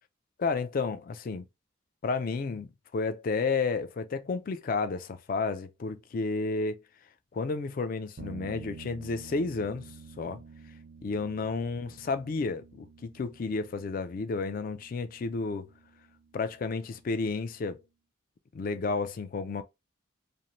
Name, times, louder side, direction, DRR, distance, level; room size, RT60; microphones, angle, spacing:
voice 1, 0.4-1.4 2.0-6.8 7.3-10.4 11.0-15.7 16.3-17.8 18.5-19.6, left 4 dB, 45° left, 0.3 m, -31 dB
sound 1, 8.2-17.7, right 5 dB, 50° right, 0.4 m, -50 dB
2.6 x 2.1 x 2.9 m
head